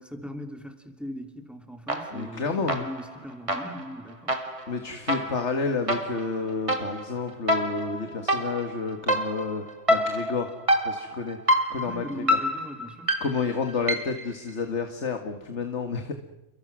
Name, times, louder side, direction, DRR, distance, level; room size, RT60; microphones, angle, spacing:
voice 1, 0.0-4.3 11.8-13.2, equal, ahead, 5 dB, 2.9 m, -39 dB
sound 1, 1.9-2.4 2.7-14.3, equal, 25° right, 2.4 m, -28 dB
voice 2, 2.1-2.8 4.7-9.6 9.9-10.5 10.8-11.4 11.7-12.4 13.2-16.2, left 4 dB, 60° left, 6 dB, 2.0 m, -30 dB
30.0 x 23.0 x 6.2 m, 0.92 s
omnidirectional pair, 1.3 m